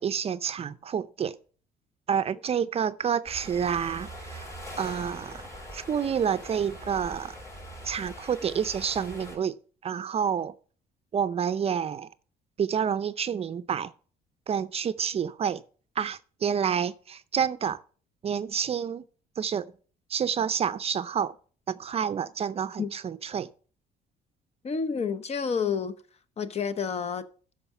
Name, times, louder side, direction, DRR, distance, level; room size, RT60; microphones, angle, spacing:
voice 1, 0.0-1.4 2.1-4.5 4.8-7.3 7.8-9.6 9.8-10.5 11.1-12.1 12.6-13.9 14.5-15.6 16.0-17.8 18.2-19.0 19.4-19.7 20.1-21.3 21.7-23.5, right 7 dB, 35° right, 0.5 m, -29 dB
sound 1, 3.3-9.4, equal, 20° left, 5.3 m, -42 dB
voice 2, 24.6-25.9 26.4-27.2, left 6 dB, 40° left, 0.9 m, -29 dB
13.0 x 4.9 x 5.6 m
cardioid pair, 110°, 17 cm